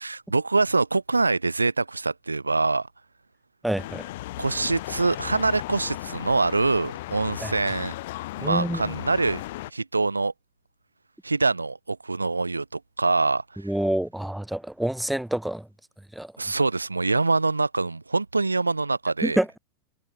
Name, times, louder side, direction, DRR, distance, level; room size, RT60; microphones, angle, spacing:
voice 1, 0.0-2.9 4.4-8.0 8.4-9.4 9.7-10.3 11.2-13.4 16.4-19.4, right 3 dB, 80° right, 0.6 m, -24 dB
voice 2, 3.6-4.0 7.4-7.5 8.4-9.0 13.6-15.6 16.1-16.3 19.2-19.6, right 1 dB, 5° right, 1.5 m, -27 dB
sound 1, 3.8-9.7, left 17 dB, 55° left, 1.9 m, -36 dB
figure-of-eight pair, 90°, 0 cm